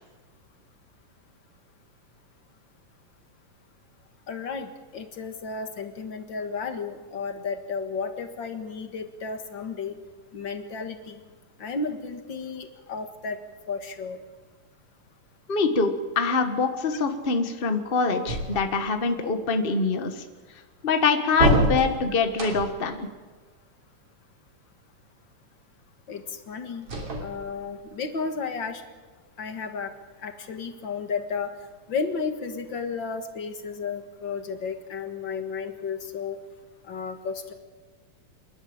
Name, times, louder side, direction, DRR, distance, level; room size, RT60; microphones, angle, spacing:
voice 1, 4.3-9.9 10.3-11.2 11.6-13.4 13.7-14.2 26.1-26.9 27.2-28.8 29.4-29.9 30.2-31.5 31.9-36.4 36.9-37.5, left 5 dB, 45° left, 7 dB, 1.9 m, -33 dB
voice 2, 15.5-20.1 20.8-23.1, left 4 dB, 80° left, 7 dB, 0.5 m, -24 dB
sound 1, 18.3-19.0 21.3-22.9 26.8-27.8, right 1 dB, 50° right, 3.9 m, -26 dB
27.5 x 11.5 x 8.8 m, 1.4 s
omnidirectional pair, 3.6 m